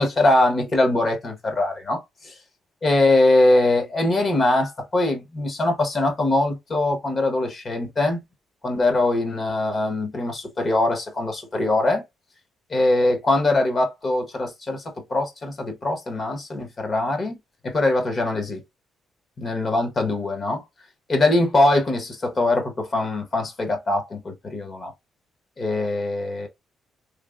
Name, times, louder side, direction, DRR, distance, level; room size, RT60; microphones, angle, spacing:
voice 1, 0.0-2.3 2.8-8.2 8.6-12.0 12.7-14.8 15.1-17.4 17.6-18.6 19.4-20.6 21.1-24.9 25.6-26.5, left 2 dB, 40° left, 1.2 m, -22 dB
3.2 x 3.1 x 2.5 m
cardioid pair, 90°, 0 cm